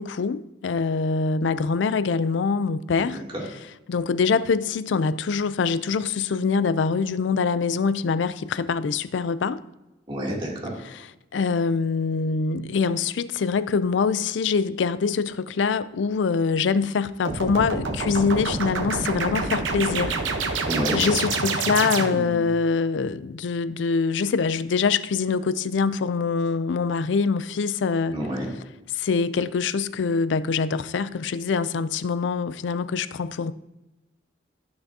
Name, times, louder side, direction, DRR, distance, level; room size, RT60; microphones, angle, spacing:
voice 1, 0.0-3.2 3.9-9.6 10.9-11.0 11.3-28.2 28.9-33.5, left 5 dB, 75° left, 0.4 m, -24 dB
voice 2, 3.0-3.4 10.1-10.7 20.7-21.1 28.1-28.5, right 1 dB, 30° right, 2.6 m, -29 dB
sound 1, 17.3-22.5, right 4 dB, 85° right, 0.9 m, -27 dB
14.5 x 6.0 x 2.7 m
head